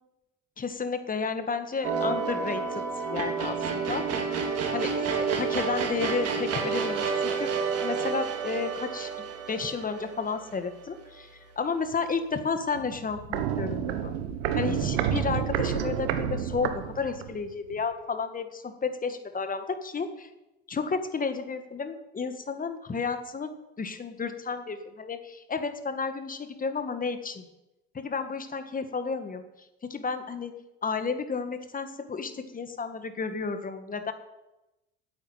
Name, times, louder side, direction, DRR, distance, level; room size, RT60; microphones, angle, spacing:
voice 1, 0.6-2.8 3.1-4.2 4.7-7.5 7.8-14.1 14.6-20.3 20.7-27.5 27.9-29.4 29.8-30.5 30.8-34.1, left 5 dB, 30° left, 9 dB, 1.8 m, -32 dB
sound 1, 1.8-11.1, right 5 dB, 55° right, 3.1 m, -30 dB
Walk footsteps, 12.7-17.4 17.7-17.8, right 9 dB, 85° right, 1.1 m, -30 dB
9.8 x 8.5 x 9.1 m, 0.97 s
supercardioid pair, 80°, 29 cm